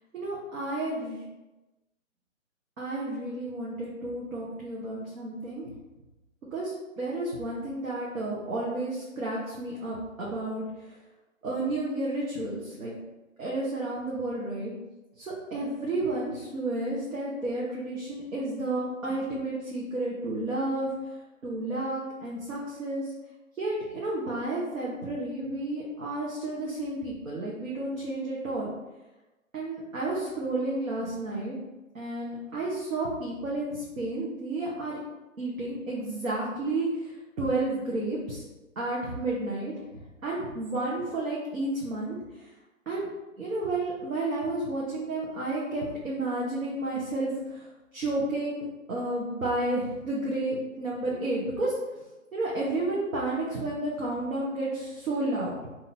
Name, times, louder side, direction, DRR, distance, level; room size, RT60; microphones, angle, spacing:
voice 1, 0.1-1.2 2.8-5.6 6.5-11.0 11.4-13.0 13.4-14.7 15.2-21.1 21.4-23.1 23.6-28.7 29.5-31.6 31.9-35.0 35.4-38.4 38.8-42.5 42.9-43.1 43.4-51.8 52.3-55.5, right 2 dB, 90° right, -6 dB, 1.1 m, -31 dB
3.8 x 2.8 x 2.8 m, 1.1 s
hypercardioid pair, 145°, 40 cm